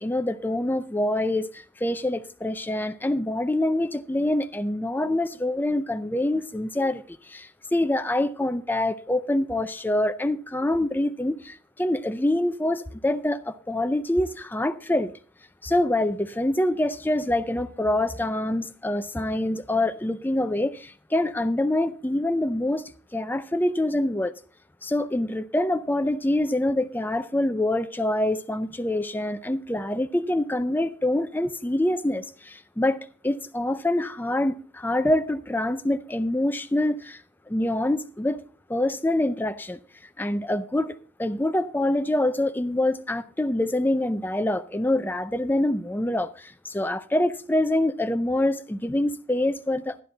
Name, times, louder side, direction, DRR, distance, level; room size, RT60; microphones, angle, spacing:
voice 1, 0.0-15.1 15.6-22.8 23.1-24.3 24.8-37.2 37.5-38.4 38.7-39.8 40.2-50.0, left 1 dB, 10° left, 0.5 m, -25 dB
12.5 x 10.5 x 3.9 m
head